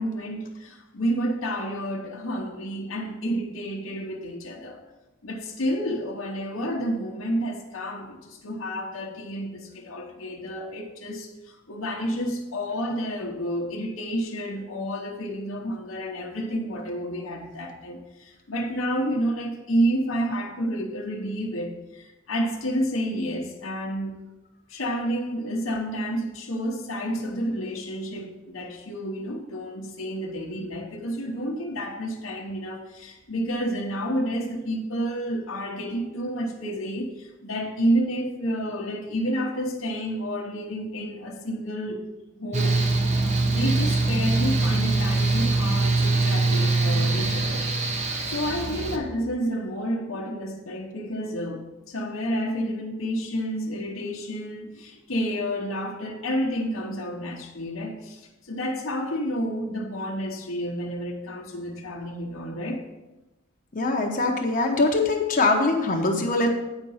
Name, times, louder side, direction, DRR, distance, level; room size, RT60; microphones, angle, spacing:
voice 1, 0.0-4.8 5.2-24.2 24.7-42.0 42.4-42.8 43.5-47.6 48.3-62.9, equal, 80° left, -1 dB, 1.0 m, -30 dB
Mechanical fan, 42.5-49.0, right 3 dB, 35° right, 0.9 m, -23 dB
voice 2, 63.7-66.5, left 2 dB, 40° left, 1 dB, 0.9 m, -22 dB
8.9 x 5.2 x 5.5 m, 1.1 s
head